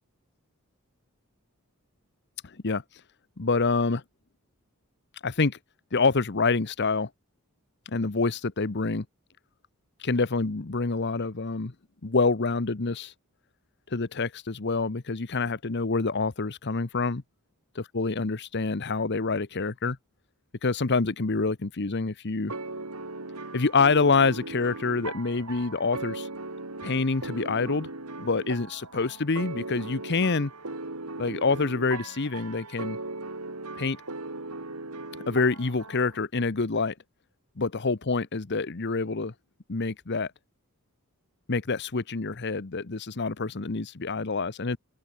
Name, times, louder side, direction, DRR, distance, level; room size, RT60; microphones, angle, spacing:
voice 1, 3.4-4.0 5.2-5.6 5.9-7.1 7.9-9.0 10.0-11.7 12.0-13.1 13.9-17.2 17.9-20.0 20.6-22.5 23.5-26.3 26.8-27.9 28.2-30.5 31.2-33.0 33.8-34.0 35.3-36.9 37.6-39.3 39.7-40.3 41.5-44.8, left 4 dB, 50° left, 1.0 m, -26 dB
sound 1, 22.5-36.2, right 2 dB, 85° right, 4.1 m, -38 dB
open air
head